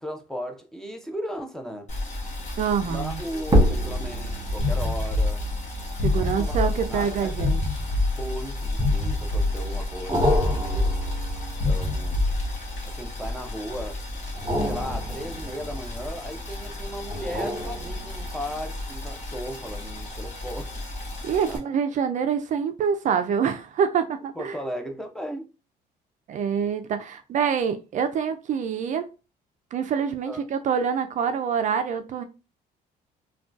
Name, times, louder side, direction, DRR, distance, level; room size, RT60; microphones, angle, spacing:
voice 1, 0.0-1.9 2.8-5.4 6.1-7.5 8.1-11.0 11.6-12.3 12.8-14.0 14.7-20.7 21.4-21.6 24.3-25.5 30.3-30.4, equal, 5° left, 0.6 m, -36 dB
Boiling, 1.9-21.6, left 2 dB, 45° left, 1.1 m, -34 dB
sound 1, 2.2-2.6 3.4-8.1 8.8-9.4 10.1-13.1 14.3-16.4 17.1-18.5 19.0-19.1, equal, 20° right, 1.2 m, -29 dB
voice 2, 2.6-3.2 5.9-7.6 21.2-24.6 26.3-29.1 29.7-32.2, right 7 dB, 45° right, 0.4 m, -26 dB
sound 2, 4.6-12.9, left 2 dB, 65° left, 0.9 m, -26 dB
3.6 x 2.2 x 2.5 m
cardioid pair, 110°, 17 cm